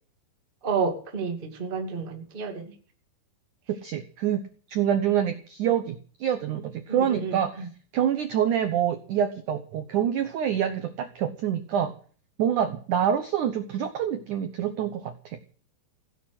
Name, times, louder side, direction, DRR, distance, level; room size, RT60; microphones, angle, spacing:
voice 1, 0.6-2.7 6.9-7.7, right 5 dB, 20° right, 4 dB, 1.4 m, -30 dB
voice 2, 3.7-7.7 7.9-11.9 12.4-15.4, right 9 dB, 70° right, 9 dB, 1.9 m, -26 dB
16.5 x 8.8 x 7.9 m, 0.43 s
omnidirectional pair, 5.0 m